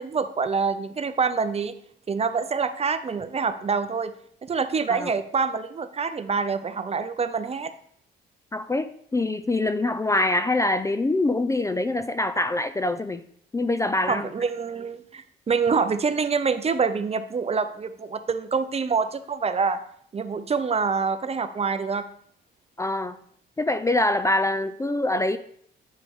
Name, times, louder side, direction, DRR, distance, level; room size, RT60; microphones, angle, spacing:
voice 1, 0.0-1.7 2.1-4.1 4.4-7.7 14.1-19.8 20.1-22.0, right 5 dB, 30° right, 11 dB, 0.6 m, -26 dB
voice 2, 8.5-13.2 13.5-14.3 22.8-23.2 23.6-25.4, left 2 dB, 15° left, 10 dB, 0.4 m, -24 dB
9.0 x 5.1 x 3.6 m, 0.65 s
cardioid pair, 90°, 20 cm